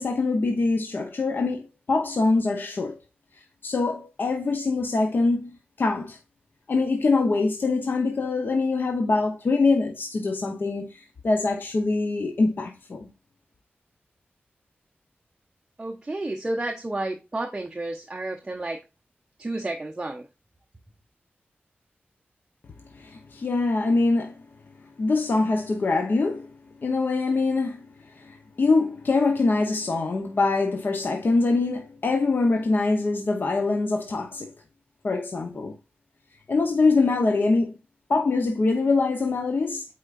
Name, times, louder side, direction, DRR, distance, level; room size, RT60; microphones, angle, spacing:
voice 1, 0.0-2.9 3.6-5.5 5.8-6.2 6.7-13.1 22.9-24.4 25.0-26.5 26.8-27.8 28.2-34.5 35.0-35.8 36.5-37.7 38.1-39.8, left 3 dB, 55° left, 0.9 m, -24 dB
voice 2, 15.8-18.8 19.4-20.3, right 2 dB, 20° right, 0.7 m, -31 dB
8.2 x 4.5 x 2.5 m
wide cardioid pair, 125°, 4 cm